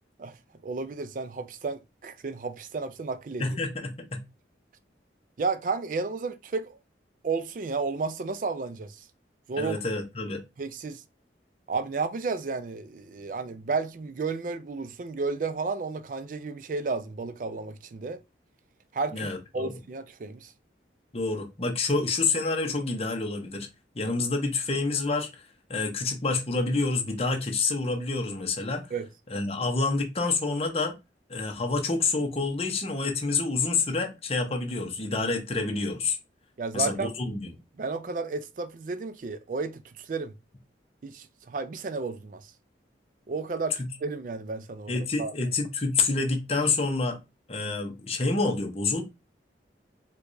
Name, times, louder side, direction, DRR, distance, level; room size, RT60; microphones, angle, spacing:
voice 1, 0.6-3.6 5.4-6.8 7.2-9.0 9.5-9.8 10.6-11.0 11.7-18.2 18.9-20.5 28.9-29.1 36.6-37.1 37.8-40.3 41.0-42.5 43.3-45.3, right 4 dB, 45° right, 0.3 m, -32 dB
voice 2, 3.4-4.2 9.6-10.4 19.1-19.7 21.1-23.7 23.9-25.3 25.7-28.9 29.3-30.9 31.3-36.2 36.7-37.5 44.9-47.2 47.5-49.0, left 3 dB, 35° left, 0.7 m, -28 dB
4.6 x 2.3 x 2.6 m
head